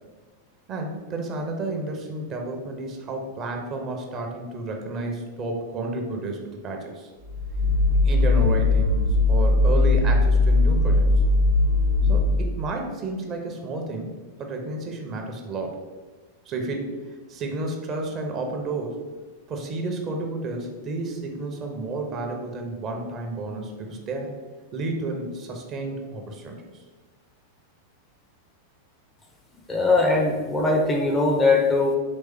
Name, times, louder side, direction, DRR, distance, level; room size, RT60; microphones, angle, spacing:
voice 1, 0.7-7.1 8.0-11.1 12.0-14.1 14.4-15.8 16.5-16.9 17.3-19.0 19.5-24.3 24.7-26.8, right 2 dB, 30° right, 2 dB, 0.7 m, -31 dB
sound 1, 7.3-12.7, left 2 dB, 75° right, 0.7 m, -20 dB
voice 2, 29.7-32.0, left 3 dB, 15° left, 2 dB, 0.6 m, -20 dB
4.3 x 3.2 x 3.5 m, 1.3 s
figure-of-eight pair, 90°, 0 cm